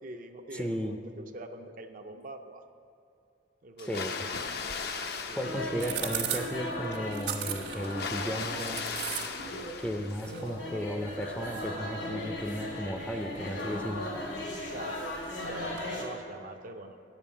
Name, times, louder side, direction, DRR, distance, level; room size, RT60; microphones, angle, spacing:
voice 1, 0.0-2.6 3.6-4.5 5.3-6.3 14.7-15.0 15.4-17.0, right 1 dB, 45° right, 6 dB, 0.5 m, -44 dB
voice 2, 0.5-0.9 3.9-4.2 5.4-8.8 9.8-14.0, equal, 5° left, 4 dB, 0.5 m, -35 dB
Water, 3.8-6.6 7.8-10.6, left 5 dB, 60° left, 0.6 m, -38 dB
sound 1, 4.3-15.9, right 9 dB, 65° right, 1.4 m, -42 dB
sound 2, 5.4-16.0, left 1 dB, 85° left, 2.6 m, -38 dB
9.0 x 7.2 x 7.5 m, 2.6 s
head